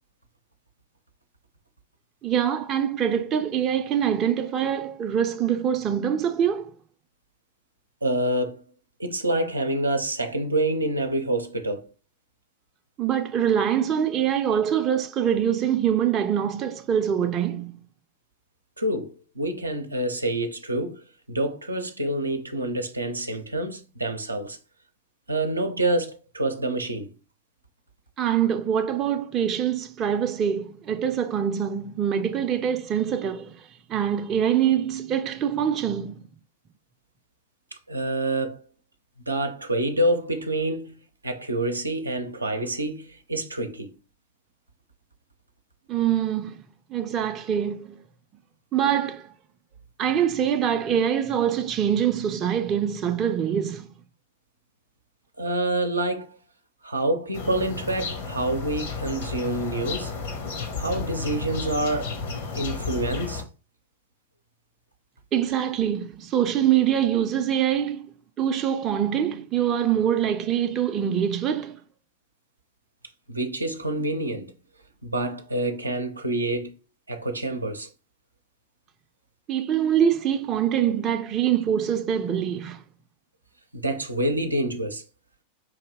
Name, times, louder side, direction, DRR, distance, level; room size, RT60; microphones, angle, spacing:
voice 1, 2.2-6.7 13.0-17.8 28.2-36.3 45.9-46.6 46.9-48.0 48.7-49.3 50.0-54.0 65.3-68.1 68.4-71.8 79.5-82.8, right 9 dB, 30° right, 0.5 m, -24 dB
voice 2, 8.0-8.6 9.0-11.9 18.8-24.6 25.3-27.1 37.9-38.6 39.3-40.9 41.2-43.9 55.4-56.3 56.8-60.2 60.8-62.2 62.5-63.4 73.3-74.5 75.0-76.7 77.1-77.9 83.7-85.0, right 1 dB, 80° right, 0.6 m, -27 dB
sound 1, 57.3-63.4, left 4 dB, 60° left, 1.2 m, -33 dB
4.9 x 2.7 x 3.6 m
figure-of-eight pair, 90°, 0 cm